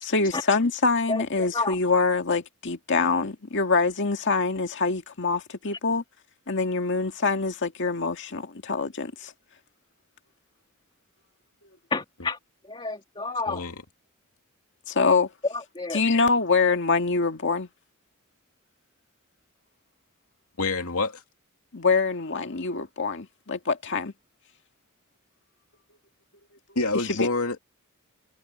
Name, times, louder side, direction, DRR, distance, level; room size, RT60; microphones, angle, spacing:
voice 1, 0.0-6.0 6.5-9.3 14.9-15.3 15.9-17.7 21.7-24.1, left 4 dB, 60° left, 2.0 m, -25 dB
voice 2, 11.9-12.4 12.7-13.6 15.5-16.0, left 3 dB, 25° left, 2.4 m, -30 dB
voice 3, 13.5-13.8 20.6-21.2 26.7-27.6, left 3 dB, 80° left, 2.7 m, -27 dB
head